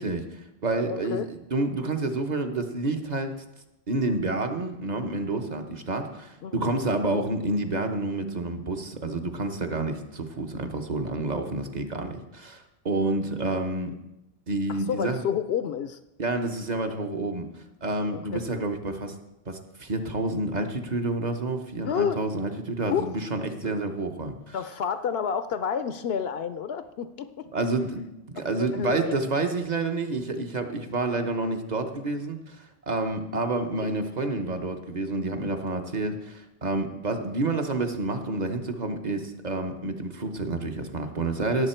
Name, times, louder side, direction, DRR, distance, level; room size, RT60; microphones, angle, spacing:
voice 1, 0.0-3.3 3.9-13.9 14.5-15.2 16.2-17.4 17.8-19.1 19.5-24.5 27.5-41.7, right 2 dB, 45° right, 5 dB, 1.1 m, -29 dB
voice 2, 0.9-1.3 6.4-6.7 14.9-16.0 18.1-18.4 21.8-22.2 22.8-23.1 24.5-27.5 28.4-29.2 33.8-33.9, left 7 dB, 70° left, 11 dB, 0.8 m, -30 dB
17.5 x 7.3 x 4.4 m, 0.94 s
omnidirectional pair, 1.1 m